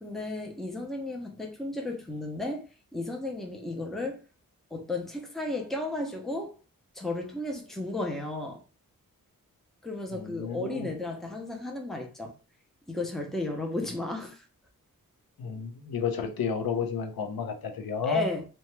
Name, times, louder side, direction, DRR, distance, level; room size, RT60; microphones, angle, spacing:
voice 1, 0.0-2.6 2.9-4.2 4.7-6.6 6.9-8.6 9.8-12.3 12.9-14.4 18.0-18.5, left 2 dB, ahead, 0.5 m, -33 dB
voice 2, 10.1-10.9 15.4-18.2, left 6 dB, 90° left, 0.6 m, -31 dB
2.8 x 2.2 x 3.1 m
wide cardioid pair, 175°, 35 cm